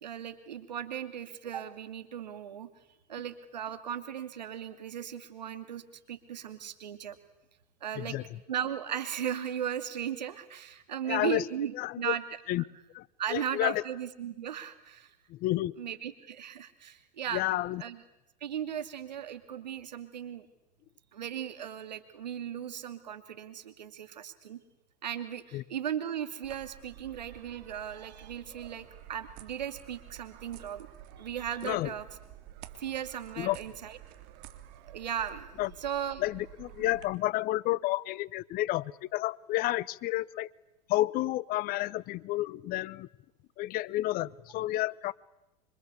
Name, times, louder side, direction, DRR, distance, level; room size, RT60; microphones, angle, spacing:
voice 1, 0.0-2.7 3.1-5.8 6.1-7.2 7.8-8.2 8.5-12.2 13.2-15.1 15.8-17.5 17.8-18.0 18.4-20.5 21.1-24.6 25.0-30.9 31.2-32.1 32.8-34.0 34.9-35.5 35.8-36.2, right 9 dB, 85° right, 10 dB, 2.5 m, -37 dB
voice 2, 8.0-8.4 11.0-11.5 11.7-12.2 12.5-12.6 12.9-13.8 15.3-15.8 17.3-17.8 25.5-25.6 31.6-31.9 33.4-33.6 35.6-35.7 36.2-40.5 40.9-43.1 43.6-45.1, left 17 dB, 45° left, 22 dB, 0.9 m, -31 dB
sound 1, 26.4-37.0, right 12 dB, 55° right, 3.2 m, -51 dB
26.5 x 25.5 x 8.3 m, 0.92 s
hypercardioid pair, 100°, 21 cm